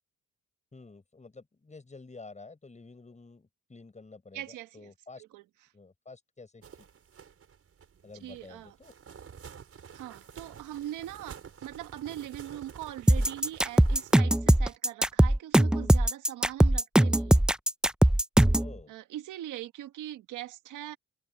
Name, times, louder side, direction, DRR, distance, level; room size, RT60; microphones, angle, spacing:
voice 1, 0.7-5.2 5.7-6.9 8.0-8.9 18.5-18.9, left 3 dB, 25° left, 6.4 m, -50 dB
voice 2, 4.3-4.9 5.2-5.7 8.2-8.8 9.9-17.4 18.9-21.0, right 13 dB, 90° right, 1.6 m, -41 dB
sound 1, 6.6-14.2, right 7 dB, 50° right, 5.5 m, -49 dB
sound 2, 13.1-18.7, right 1 dB, 5° right, 0.3 m, -21 dB
cardioid pair, 90°, 30 cm